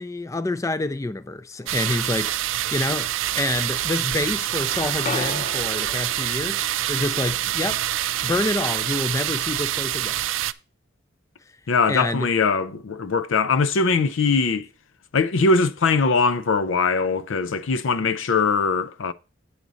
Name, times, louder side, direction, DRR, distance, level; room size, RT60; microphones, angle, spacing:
voice 1, 0.0-3.1 3.4-6.6 6.9-10.2 11.9-12.3, left 2 dB, 15° left, 0.3 m, -27 dB
sound 1, 1.6-2.5 3.0-4.1 4.3-8.3, left 3 dB, 40° left, 0.7 m, -37 dB
sound 2, 1.7-10.5, right 13 dB, 85° right, 0.4 m, -26 dB
voice 2, 11.7-14.7 15.1-19.1, left 4 dB, 90° left, 0.5 m, -21 dB
8.1 x 4.0 x 6.1 m
head